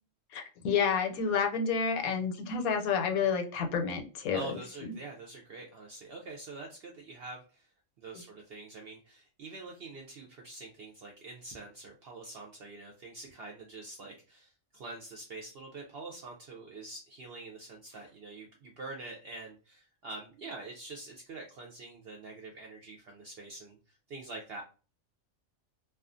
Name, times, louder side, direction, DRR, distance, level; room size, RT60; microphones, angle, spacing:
voice 1, 0.3-4.6, left 6 dB, 80° left, 5 dB, 1.0 m, -29 dB
voice 2, 4.3-7.7 8.0-24.6, right 3 dB, 70° right, 0 dB, 0.6 m, -45 dB
2.3 x 2.3 x 2.4 m, 0.35 s
omnidirectional pair, 1.5 m